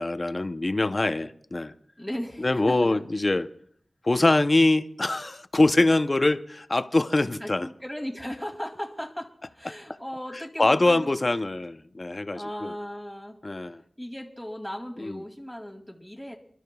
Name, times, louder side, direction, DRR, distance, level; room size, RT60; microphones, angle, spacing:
voice 1, 0.0-1.7 2.4-3.5 4.0-7.7 9.7-9.8 10.6-12.7 13.4-13.8 15.0-15.2, left 2 dB, 40° left, 11 dB, 0.6 m, -24 dB
voice 2, 2.0-3.0 7.4-11.3 12.3-13.4 14.0-16.4, equal, ahead, 0 dB, 2.4 m, -37 dB
28.5 x 13.0 x 2.3 m, 0.63 s
wide cardioid pair, 70°, 0 cm